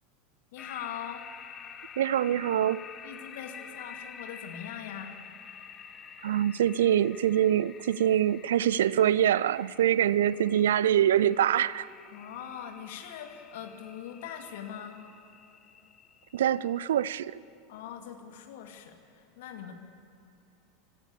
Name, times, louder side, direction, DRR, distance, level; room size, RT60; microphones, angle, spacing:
voice 1, 0.5-1.2 3.0-5.1 12.1-15.0 17.7-19.7, left 9 dB, 65° left, 2.3 m, -42 dB
sound 1, 0.6-17.3, left 7 dB, 30° left, 1.3 m, -49 dB
voice 2, 2.0-2.8 6.2-11.9 16.3-17.4, right 11 dB, 70° right, 0.4 m, -24 dB
25.5 x 15.0 x 7.0 m
figure-of-eight pair, 85°, 0 cm